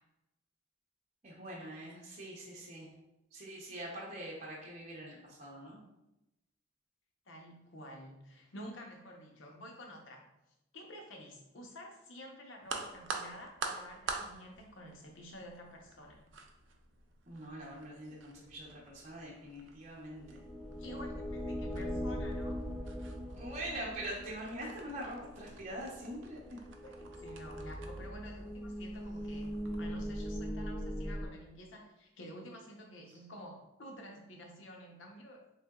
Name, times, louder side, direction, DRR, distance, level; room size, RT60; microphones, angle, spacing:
voice 1, 1.2-2.9 3.3-5.8 17.3-20.4 23.4-26.6, right 1 dB, 35° right, -4 dB, 0.6 m, -44 dB
voice 2, 7.3-10.3 10.7-16.2 20.8-22.6 26.8-35.4, equal, 85° left, 1 dB, 0.7 m, -50 dB
sound 1, 12.6-30.1, right 4 dB, 75° right, 0.4 m, -48 dB
sound 2, 20.2-31.3, equal, 5° right, 0.3 m, -41 dB
3.7 x 3.3 x 2.3 m, 0.90 s
head